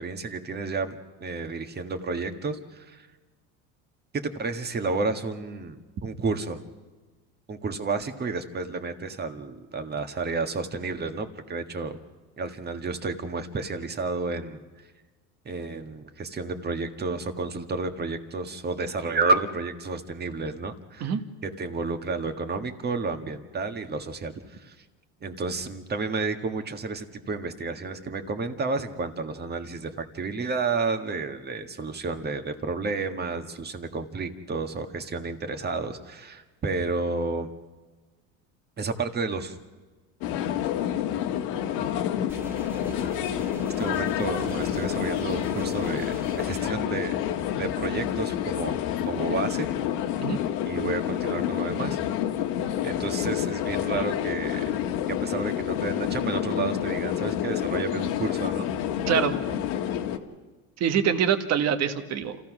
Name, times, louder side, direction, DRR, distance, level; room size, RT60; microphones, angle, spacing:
voice 1, 0.0-3.1 4.4-6.6 7.5-12.0 12.4-14.6 15.4-21.1 21.4-24.7 25.2-37.5 38.8-39.6 43.8-47.2 47.6-49.7 50.7-52.0 52.8-54.8 55.1-58.7, right 3 dB, 30° right, 7 dB, 1.7 m, -31 dB
sound 1, 40.2-60.2, left 10 dB, 80° left, 1.6 m, -28 dB
sound 2, 42.3-46.7, left 1 dB, 5° right, 1.9 m, -42 dB
voice 2, 60.8-62.4, right 8 dB, 50° right, 8 dB, 1.6 m, -24 dB
28.0 x 15.0 x 6.2 m, 1.3 s
supercardioid pair, 115°, 33 cm